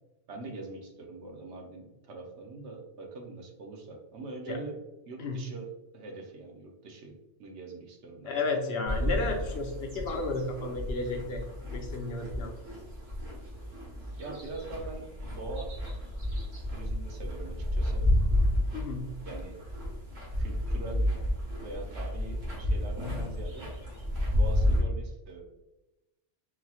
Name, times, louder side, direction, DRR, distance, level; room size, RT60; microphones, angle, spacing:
voice 1, 0.3-4.8 5.1-8.4 14.0-15.7 16.7-18.1 19.2-19.6 20.4-21.1 21.6-23.7 24.3-25.4, right 3 dB, 70° right, 2 dB, 1.0 m, -43 dB
voice 2, 8.3-11.4 11.7-12.5 18.7-19.1, left 3 dB, 65° left, 3 dB, 0.7 m, -32 dB
sound 1, 8.9-24.8, left 1 dB, 40° right, 1.2 m, -31 dB
4.0 x 2.8 x 2.3 m, 0.98 s
omnidirectional pair, 1.2 m